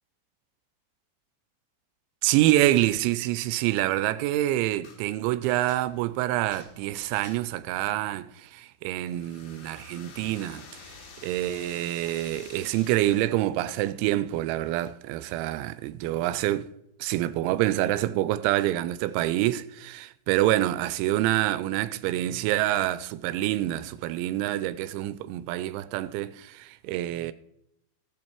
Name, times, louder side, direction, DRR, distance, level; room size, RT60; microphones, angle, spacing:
voice 1, 2.2-16.7 17.0-27.3, right 15 dB, 85° right, 2.9 m, -27 dB
sound 1, 4.8-5.0 5.4-7.7 9.1-13.3, left 5 dB, 75° left, 4.0 m, -49 dB
14.0 x 7.6 x 4.5 m
omnidirectional pair, 5.3 m